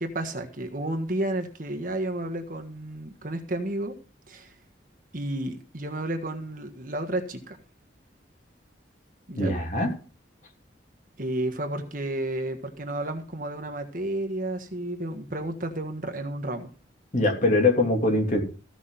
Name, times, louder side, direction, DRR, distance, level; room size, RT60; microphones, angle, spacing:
voice 1, 0.0-4.0 4.3-4.5 5.1-7.6 9.3-9.5 11.2-16.7, right 1 dB, 45° right, 5 dB, 1.5 m, -31 dB
voice 2, 9.3-9.9 17.1-18.4, left 2 dB, 40° left, 1 dB, 3.0 m, -22 dB
15.5 x 6.1 x 5.7 m, 0.38 s
head